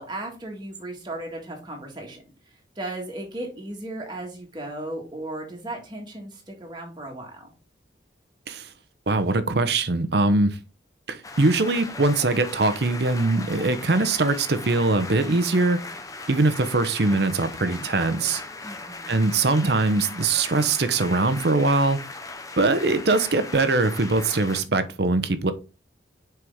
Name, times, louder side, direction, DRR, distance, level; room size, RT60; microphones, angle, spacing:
voice 1, 0.0-2.2 2.5-7.5 18.6-19.2, right 1 dB, 25° right, 1.7 m, -36 dB
voice 2, 9.1-10.6 11.1-15.8 16.3-18.4 19.1-22.0 22.6-25.5, right 3 dB, 60° right, 0.7 m, -22 dB
sound 1, 11.2-24.6, left 3 dB, 20° left, 0.6 m, -38 dB
6.2 x 4.6 x 3.6 m
head